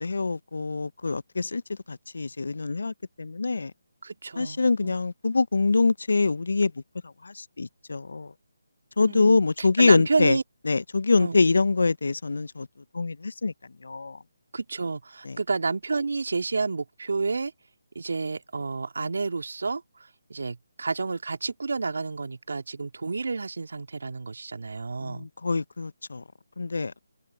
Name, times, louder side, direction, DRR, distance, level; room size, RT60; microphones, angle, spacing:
voice 1, 0.0-3.7 4.4-6.7 7.0-8.3 9.0-10.4 10.6-12.7 12.9-13.5 13.8-14.2 15.2-15.4 25.0-26.2 26.6-26.9, left 3 dB, 70° left, 1.0 m, -25 dB
voice 2, 4.0-5.0 9.0-10.4 11.2-11.4 14.5-17.5 18.0-19.8 20.3-25.3, right 4 dB, 65° right, 2.2 m, -30 dB
figure-of-eight pair, 150°, 0 cm